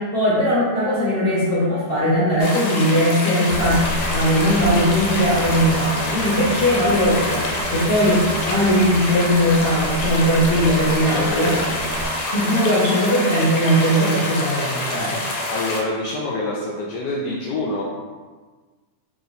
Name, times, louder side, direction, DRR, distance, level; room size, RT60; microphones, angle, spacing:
voice 1, 0.0-3.8 4.1-11.6 12.3-15.2, equal, 35° left, -11 dB, 1.0 m, -19 dB
sound 1, 2.4-15.8, left 1 dB, 90° left, 1.4 m, -26 dB
sound 2, 3.5-12.1, equal, 75° right, 1.2 m, -31 dB
voice 2, 10.8-11.6 15.5-17.8, left 2 dB, 75° left, -4 dB, 1.1 m, -26 dB
3.3 x 2.8 x 4.0 m, 1.4 s
omnidirectional pair, 2.0 m